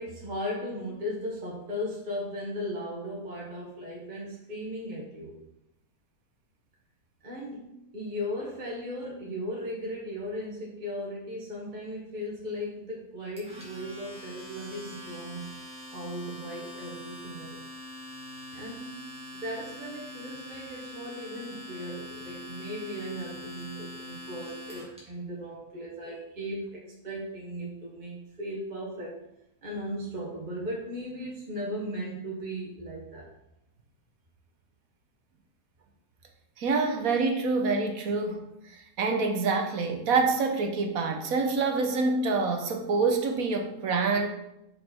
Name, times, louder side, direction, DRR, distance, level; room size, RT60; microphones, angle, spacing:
voice 1, 0.0-5.3 7.2-15.5 15.9-17.6 18.5-29.2 29.6-33.3, equal, 30° right, -4 dB, 1.3 m, -37 dB
Domestic sounds home sounds, 13.4-25.0, left 1 dB, 5° right, 2.2 m, -43 dB
voice 2, 36.6-44.3, right 4 dB, 65° right, 4 dB, 1.3 m, -26 dB
6.6 x 5.4 x 4.3 m, 0.84 s
omnidirectional pair, 1.7 m